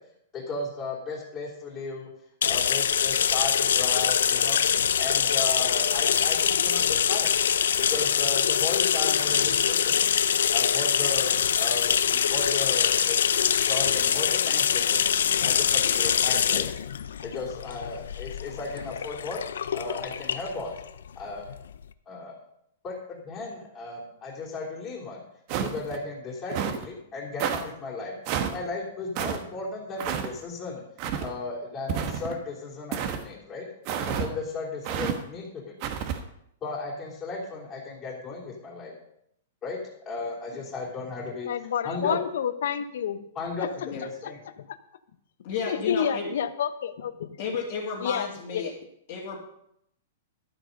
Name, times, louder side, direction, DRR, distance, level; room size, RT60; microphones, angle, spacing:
voice 1, 0.3-2.1 2.4-4.6 5.0-7.3 7.8-10.1 10.5-13.2 13.5-16.7 17.2-19.4 19.7-20.7 21.1-21.4 22.0-22.3 22.8-25.2 25.6-28.1 28.5-30.8 31.2-33.7 34.1-35.9 36.6-38.9 39.6-39.8 40.0-41.5 41.8-42.2 43.3-43.7 44.0-44.4, left 3 dB, 15° left, -7 dB, 3.1 m, -35 dB
sound 1, 2.4-21.8, left 8 dB, 90° left, 0.5 m, -24 dB
sound 2, 25.5-26.0 26.5-26.8 27.4-27.6 28.3-28.6 29.1-29.4 30.0-30.3 31.0-31.3 31.9-32.4 32.9-33.2 33.8-34.3 34.8-35.2 35.8-36.2, right 8 dB, 35° right, 1.1 m, -29 dB
voice 2, 41.5-43.2 43.6-43.7 44.6-44.8 45.7-47.4 48.0-48.3 48.5-48.7, left 8 dB, 70° left, 13 dB, 0.9 m, -29 dB
voice 3, 45.4-46.3 47.4-48.7 49.1-49.4, left 5 dB, 40° left, -4 dB, 2.2 m, -32 dB
12.5 x 7.8 x 5.3 m, 0.75 s
hypercardioid pair, 165°, 0 cm